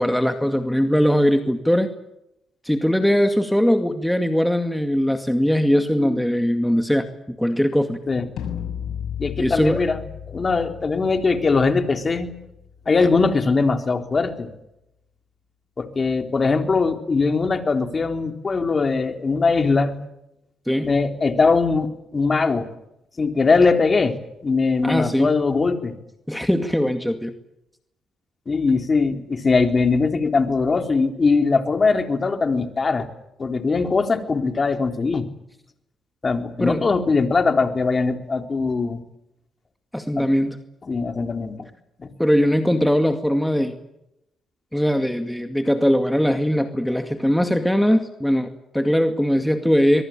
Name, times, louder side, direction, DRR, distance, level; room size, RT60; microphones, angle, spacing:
voice 1, 0.0-1.9 2.6-8.0 9.4-9.8 20.7-20.9 24.8-25.3 26.3-27.3 36.6-36.9 39.9-40.6 42.2-43.8 44.7-50.0, equal, 5° left, 7 dB, 2.2 m, -20 dB
sound 1, 8.4-14.3, left 9 dB, 70° left, 7.2 m, -35 dB
voice 2, 9.2-10.0 10.3-12.3 12.9-14.5 15.8-20.0 20.8-22.7 23.2-25.9 28.5-33.1 33.4-35.3 36.2-39.0 40.2-40.3 40.9-41.7 42.0-42.1, left 4 dB, 35° left, 6 dB, 3.8 m, -21 dB
24.0 x 23.0 x 8.9 m, 0.84 s
cardioid pair, 90°, 0 cm